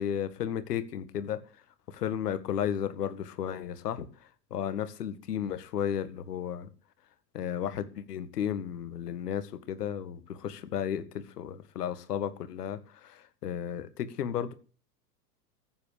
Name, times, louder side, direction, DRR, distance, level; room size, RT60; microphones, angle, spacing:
voice 1, 0.0-1.4 1.9-4.1 4.5-6.7 7.3-14.5, left 9 dB, 75° left, 2.0 m, -33 dB
15.0 x 8.5 x 8.5 m
hypercardioid pair, 100°, 47 cm